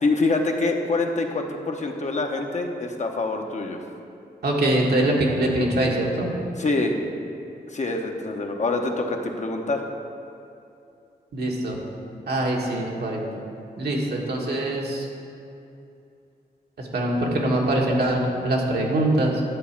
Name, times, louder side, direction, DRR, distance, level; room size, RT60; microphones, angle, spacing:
voice 1, 0.0-3.8 6.6-7.0 7.7-9.8, left 3 dB, 45° left, 3 dB, 0.9 m, -25 dB
voice 2, 4.4-6.3 11.3-11.8 12.3-13.2 13.8-15.1 16.8-19.4, right 1 dB, 75° right, -2 dB, 1.6 m, -23 dB
11.0 x 4.2 x 7.2 m, 2.6 s
wide cardioid pair, 85°, 17 cm